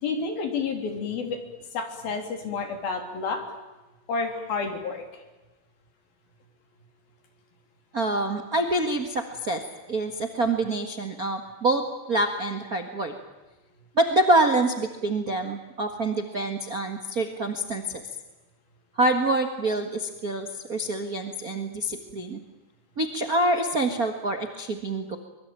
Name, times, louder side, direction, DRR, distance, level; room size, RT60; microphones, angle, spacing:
voice 1, 0.0-1.4 1.7-3.4 4.1-5.0, left 4 dB, 70° left, 5 dB, 5.1 m, -30 dB
voice 2, 7.9-9.6 9.9-11.8 12.1-13.1 13.9-17.8 19.0-22.4 23.0-25.2, right 2 dB, 40° right, 5 dB, 1.2 m, -26 dB
24.5 x 22.5 x 9.0 m, 1.1 s
omnidirectional pair, 4.4 m